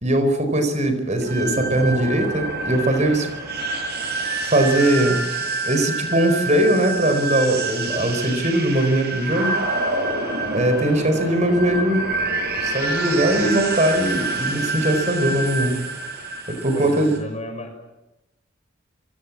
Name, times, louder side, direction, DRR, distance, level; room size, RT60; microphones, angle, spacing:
voice 1, 0.0-3.3 4.4-5.2 5.6-9.6 10.5-12.1 12.6-15.8 16.5-17.1, right 1 dB, 35° right, 7 dB, 4.7 m, -20 dB
sound 1, 1.2-17.2, right 2 dB, 55° right, 7.9 m, -27 dB
voice 2, 16.7-17.7, left 1 dB, 35° left, 6 dB, 6.3 m, -34 dB
28.0 x 24.5 x 7.5 m, 0.95 s
head